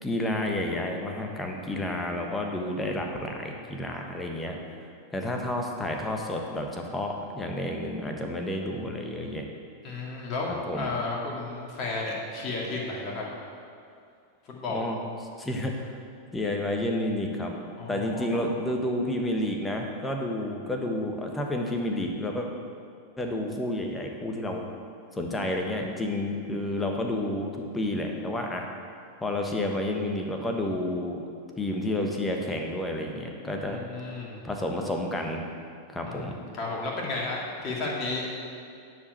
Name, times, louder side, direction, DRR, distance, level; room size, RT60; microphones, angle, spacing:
voice 1, 0.0-4.6 5.1-9.4 10.5-10.9 14.7-15.0 15.4-16.0 16.3-17.6 17.9-22.5 23.2-24.6 25.1-28.6 29.2-31.3 31.6-33.8 34.4-35.5 35.9-36.4, left 1 dB, 10° left, 2 dB, 1.3 m, -30 dB
voice 2, 9.8-13.2 14.5-14.9 17.8-18.4 33.7-34.4 36.1-38.3, left 3 dB, 30° left, -3 dB, 2.3 m, -33 dB
10.0 x 5.0 x 8.0 m, 2.3 s
figure-of-eight pair, 90°, 0 cm